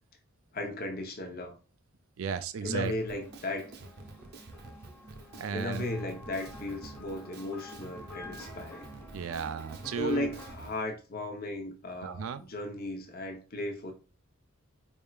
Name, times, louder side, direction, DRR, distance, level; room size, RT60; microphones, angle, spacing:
voice 1, 0.5-1.6 2.6-3.7 5.5-8.9 9.9-13.9, left 1 dB, 50° left, 0.7 m, -36 dB
voice 2, 2.2-2.9 5.4-5.8 9.1-10.3 12.0-12.4, right 6 dB, 90° right, 0.4 m, -34 dB
Drum kit, 2.8-10.8, right 3 dB, 55° right, 0.7 m, -49 dB
sound 1, 3.0-10.5, left 1 dB, 10° left, 1.3 m, -49 dB
4.3 x 3.5 x 2.3 m
head